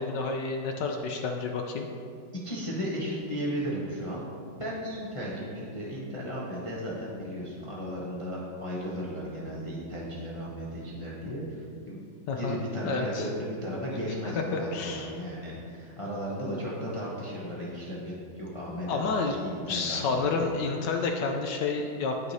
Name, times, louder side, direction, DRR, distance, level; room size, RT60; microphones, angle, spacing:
voice 1, 0.0-1.9 12.3-12.6 12.8-13.3 14.3-15.1 18.9-19.4 19.7-22.3, left 4 dB, 70° left, 3 dB, 1.1 m, -30 dB
voice 2, 2.4-4.2 4.6-12.1 12.3-20.5, equal, 35° left, -5 dB, 0.5 m, -35 dB
13.0 x 4.8 x 2.7 m, 2.4 s
omnidirectional pair, 2.2 m